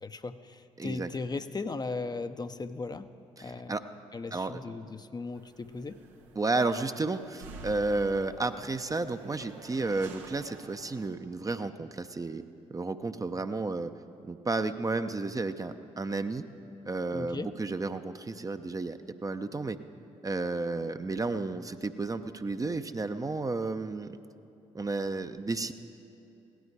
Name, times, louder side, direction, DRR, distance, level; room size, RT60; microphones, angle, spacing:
voice 1, 0.0-3.1 3.4-3.8 4.1-6.0 17.1-17.5, left 3 dB, 25° left, 9 dB, 0.6 m, -37 dB
voice 2, 0.8-1.1 3.4-3.8 4.3-4.6 6.4-12.4 12.7-13.9 14.2-16.4 16.9-19.8 20.2-24.2 24.7-25.7, right 3 dB, 20° right, 9 dB, 0.6 m, -32 dB
sound 1, 5.3-11.1, right 4 dB, 85° right, 0.9 m, -50 dB
17.0 x 12.5 x 4.7 m, 2.9 s
hypercardioid pair, 45°, 15 cm